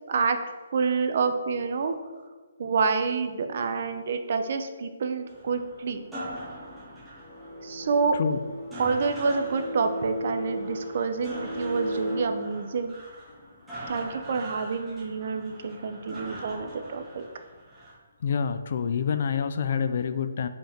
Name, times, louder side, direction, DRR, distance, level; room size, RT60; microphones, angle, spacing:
voice 1, 0.7-1.9 2.6-6.0 7.6-8.1 8.8-12.9 13.9-17.2, right 5 dB, 45° right, 7 dB, 0.7 m, -28 dB
sound 1, 5.3-18.0, right 1 dB, 5° right, 1.7 m, -43 dB
sound 2, 6.3-12.2, equal, 25° left, 2.0 m, -36 dB
voice 2, 18.2-20.5, left 6 dB, 45° left, 10 dB, 0.4 m, -27 dB
7.0 x 5.3 x 4.4 m, 1.4 s
hypercardioid pair, 170°, 0 cm